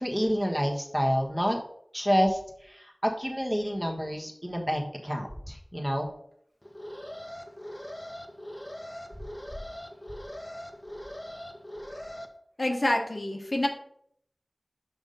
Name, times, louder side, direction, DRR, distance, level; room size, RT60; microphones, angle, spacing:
voice 1, 0.0-1.6 1.9-2.4 3.0-6.1, equal, 10° right, 0 dB, 1.4 m, -28 dB
Alarm, 6.6-12.3, equal, 20° left, 1.0 m, -41 dB
voice 2, 12.6-13.7, left 1 dB, 50° left, 2 dB, 1.1 m, -27 dB
5.9 x 5.4 x 5.4 m, 0.68 s
wide cardioid pair, 55°, 0 cm